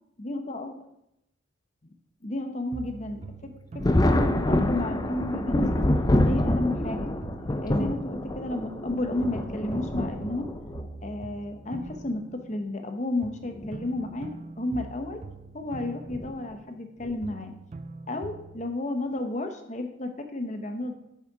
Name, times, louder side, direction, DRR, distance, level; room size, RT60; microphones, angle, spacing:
voice 1, 0.2-0.8 2.2-5.9 6.2-7.1 7.4-10.5 11.0-15.2 15.5-17.5 18.1-20.9, left 2 dB, 40° left, 6 dB, 0.9 m, -32 dB
sound 1, 2.7-4.9 5.2-8.9 9.2-12.9 13.2-16.9 17.2-18.8, right 3 dB, 35° right, 0.4 m, -43 dB
Thunder, 3.8-10.9 11.9-12.0 13.4-13.7 14.1-14.2 16.1-16.3 17.0-17.4, left 1 dB, 20° left, 0.5 m, -26 dB
7.1 x 6.7 x 4.8 m, 0.82 s
head